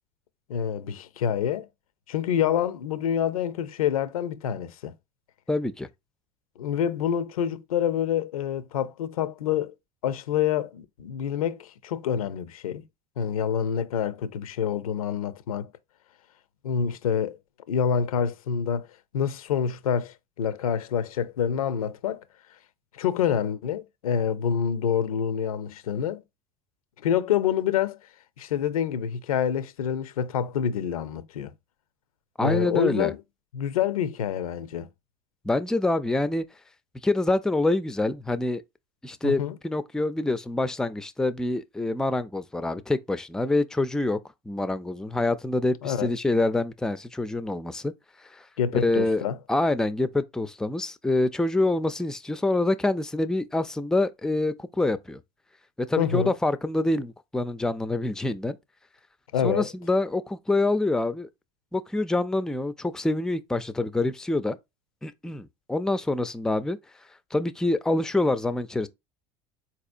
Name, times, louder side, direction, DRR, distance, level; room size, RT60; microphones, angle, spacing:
voice 1, 0.5-1.7 2.1-4.9 6.6-9.7 10.0-12.8 13.2-15.7 16.6-17.4 17.7-18.9 19.1-22.2 22.9-26.2 27.0-28.0 28.4-31.5 32.4-33.2 33.5-34.9 39.2-39.5 45.8-46.1 48.6-49.4 56.0-56.3 59.3-59.7, left 8 dB, 90° left, 0.5 m, -27 dB
voice 2, 5.5-5.9 32.4-33.1 35.4-36.4 37.0-38.6 39.0-44.2 44.5-47.9 48.3-48.5 48.7-55.2 55.8-58.6 59.4-61.3 61.7-64.6 65.0-66.8 67.3-68.9, left 2 dB, 5° left, 0.4 m, -26 dB
4.1 x 2.7 x 2.5 m
hypercardioid pair, 80°, 18 cm